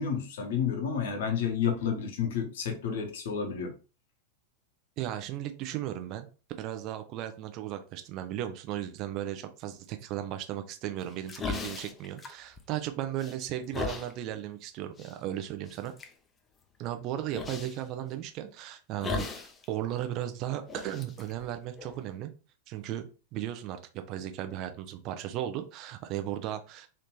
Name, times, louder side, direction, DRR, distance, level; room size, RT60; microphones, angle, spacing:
voice 1, 0.0-3.7, left 7 dB, 55° left, 0.8 m, -30 dB
voice 2, 5.0-6.3 6.6-15.9 16.8-22.3 22.7-26.9, right 12 dB, 40° right, 0.5 m, -36 dB
sound 1, 11.0-12.9 13.2-14.1 15.0-15.1 15.7-16.1 17.3-17.8 19.0-19.6 19.9-20.0 20.7-22.2, left 5 dB, 20° left, 0.5 m, -37 dB
3.2 x 2.6 x 3.0 m
figure-of-eight pair, 90°, 0 cm